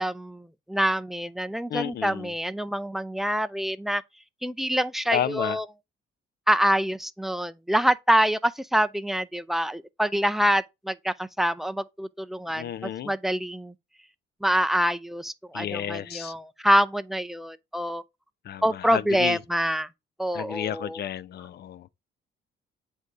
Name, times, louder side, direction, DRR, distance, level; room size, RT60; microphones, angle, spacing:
voice 1, 0.0-4.0 4.4-5.6 6.5-13.7 14.4-18.0 18.6-19.9 20.2-21.0, equal, ahead, 0.4 m, -26 dB
voice 2, 1.7-2.3 5.1-5.6 12.5-13.1 15.5-16.3 18.4-19.4 20.3-21.9, left 10 dB, 55° left, 0.5 m, -32 dB
8.1 x 2.7 x 4.5 m
cardioid pair, 90°, 20 cm